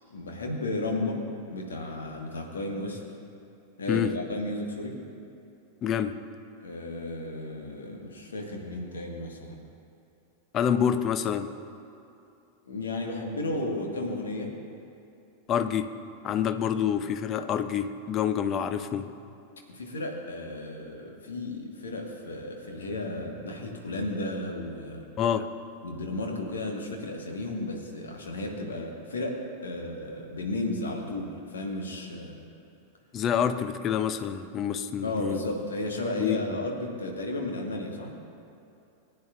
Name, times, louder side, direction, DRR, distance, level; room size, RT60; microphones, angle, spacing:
voice 1, 0.1-1.2 1.5-3.0 3.8-4.9 6.6-9.6 12.7-14.5 19.7-25.0 25.8-32.4 35.0-38.1, left 2 dB, 70° left, 1 dB, 1.5 m, -33 dB
voice 2, 5.8-6.2 10.5-11.5 15.5-15.9 16.2-19.1 25.2-25.6 33.1-35.4 36.2-36.6, left 8 dB, 30° left, 10 dB, 0.5 m, -27 dB
19.0 x 9.4 x 2.5 m, 2.7 s
figure-of-eight pair, 90°, 0 cm